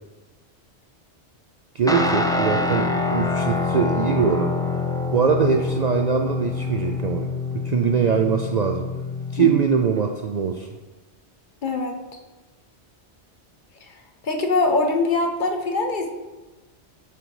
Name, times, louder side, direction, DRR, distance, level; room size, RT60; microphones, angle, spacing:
voice 1, 1.7-4.5 5.1-7.3 7.6-8.9 9.3-10.7, right 6 dB, 55° right, 4 dB, 0.4 m, -22 dB
Guitar, 1.9-10.0, left 3 dB, 5° left, 0.3 m, -26 dB
voice 2, 11.6-11.9 13.8-13.9 14.2-16.1, left 3 dB, 50° left, 4 dB, 0.9 m, -23 dB
8.9 x 3.9 x 4.7 m, 1.2 s
omnidirectional pair, 1.1 m